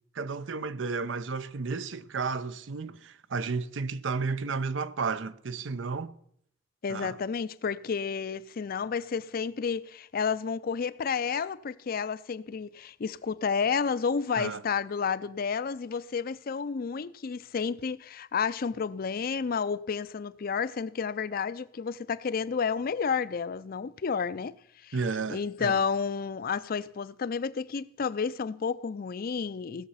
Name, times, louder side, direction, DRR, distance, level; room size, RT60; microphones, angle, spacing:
voice 1, 0.1-6.1 6.9-7.2 14.4-14.6 24.9-25.8, right 4 dB, 80° right, 0.6 m, -32 dB
voice 2, 6.8-24.5 24.8-25.0 25.3-29.9, left 6 dB, 50° left, 0.4 m, -31 dB
17.0 x 6.9 x 5.6 m
head